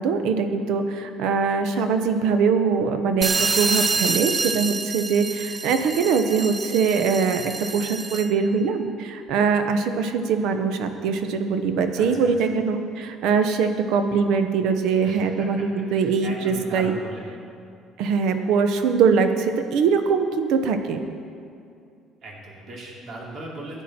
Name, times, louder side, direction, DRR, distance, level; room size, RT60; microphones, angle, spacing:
voice 1, 0.0-3.3 3.6-16.9 18.0-21.0, right 5 dB, 70° right, 7 dB, 0.9 m, -22 dB
sound 1, 3.2-8.4, right 4 dB, 20° right, 0.4 m, -27 dB
voice 2, 11.9-12.3 15.0-17.2 22.2-23.8, right 2 dB, 45° right, -3 dB, 2.7 m, -38 dB
15.5 x 9.2 x 4.4 m, 2.4 s
cardioid pair, 150°, 0 cm